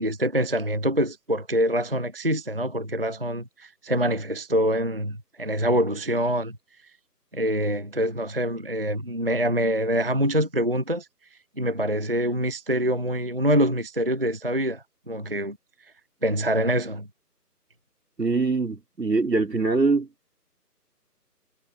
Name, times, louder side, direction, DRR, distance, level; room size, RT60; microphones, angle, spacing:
voice 1, 0.0-6.6 7.3-11.1 11.6-15.6 16.2-17.1, equal, 40° right, 0.5 m, -25 dB
voice 2, 18.2-20.1, right 3 dB, 90° right, 3.7 m, -23 dB
figure-of-eight pair, 160°, 49 cm